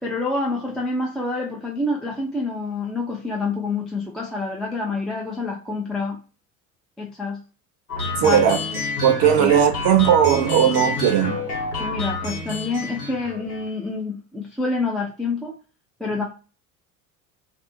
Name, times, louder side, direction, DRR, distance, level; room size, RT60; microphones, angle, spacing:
voice 1, 0.0-6.2 7.0-7.4 8.2-8.5 9.4-9.5 11.8-15.5 16.0-16.2, left 3 dB, ahead, 0.5 m, -27 dB
sound 1, 7.9-13.7, left 3 dB, 90° left, 1.1 m, -28 dB
voice 2, 8.2-8.6 9.0-11.4, right 9 dB, 50° right, 0.7 m, -17 dB
2.5 x 2.3 x 2.6 m
figure-of-eight pair, 65°, 44 cm